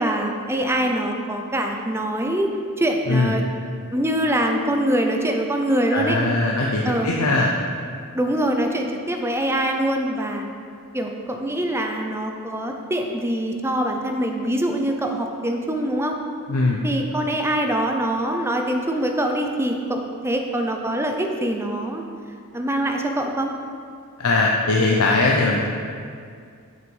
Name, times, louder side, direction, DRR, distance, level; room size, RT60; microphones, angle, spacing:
voice 1, 0.0-3.4 3.9-6.2 6.8-7.1 8.1-10.5 10.9-16.2 16.8-22.0 22.5-23.5, right 1 dB, 10° right, 3 dB, 0.7 m, -24 dB
voice 2, 5.9-7.5 16.5-16.8 24.2-25.6, left 2 dB, 80° left, -1 dB, 0.7 m, -20 dB
8.0 x 6.3 x 5.4 m, 2.2 s
head